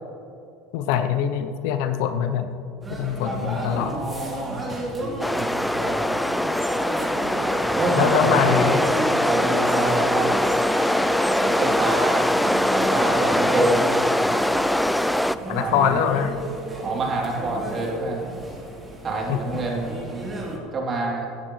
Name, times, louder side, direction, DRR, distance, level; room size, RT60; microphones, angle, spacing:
voice 1, 0.7-2.5 2.9-4.0 8.0-8.8 15.5-16.4 19.3-19.6, left 9 dB, 65° left, 9 dB, 0.7 m, -23 dB
sound 1, 2.8-20.6, right 1 dB, 20° right, 3.1 m, -32 dB
voice 2, 3.5-4.6 5.0-6.1 7.7-8.6 9.2-10.7 11.4-12.3 12.5-14.0 15.5-16.0 16.8-18.3 19.0-20.3 20.7-21.3, right 2 dB, 35° right, -1 dB, 3.0 m, -28 dB
sound 2, 5.2-15.3, left 1 dB, 5° left, 0.4 m, -22 dB
16.0 x 11.0 x 3.2 m, 2.6 s
hypercardioid pair, 80°, 0 cm